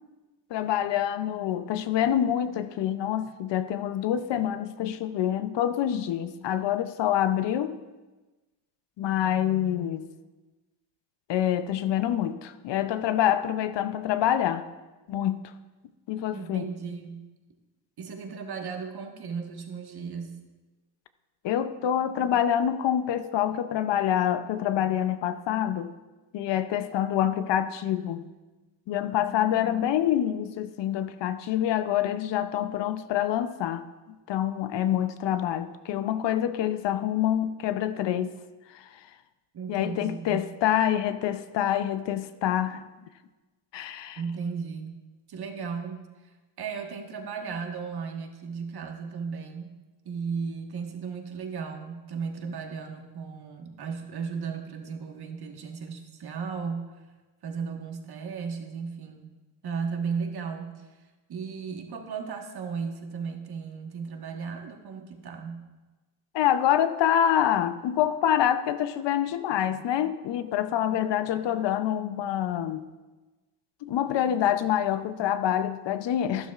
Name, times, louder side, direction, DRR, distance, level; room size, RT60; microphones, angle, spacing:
voice 1, 0.5-7.8 9.0-10.1 11.3-14.7 15.1-15.5 16.1-16.7 21.4-25.9 26.3-28.3 28.9-33.8 34.3-38.4 38.7-38.9 39.7-42.8 43.7-44.2 66.3-72.8 73.8-76.5, left 10 dB, 60° left, 0.7 m, -26 dB
voice 2, 16.3-17.3 18.0-20.4 39.5-40.4 44.2-45.0 45.3-49.7 50.0-57.0 57.4-59.3 59.6-61.0 61.3-65.6, right 5 dB, 50° right, 1.5 m, -35 dB
12.5 x 11.0 x 2.4 m
cardioid pair, 85°, 50 cm